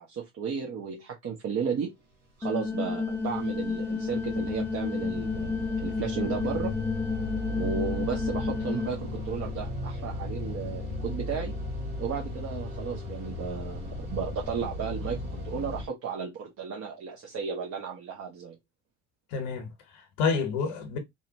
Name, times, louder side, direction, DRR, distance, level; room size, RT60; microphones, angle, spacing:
voice 1, 0.0-1.9 2.4-6.8 7.5-11.5 12.0-18.6, right 6 dB, 40° right, 0.7 m, -34 dB
sound 1, 2.4-8.9, left 4 dB, 5° left, 0.4 m, -31 dB
sound 2, 2.7-15.8, left 2 dB, 90° right, 1.1 m, -36 dB
voice 2, 19.3-21.0, left 5 dB, 70° left, 0.8 m, -29 dB
2.6 x 2.1 x 2.7 m
hypercardioid pair, 60°, 37 cm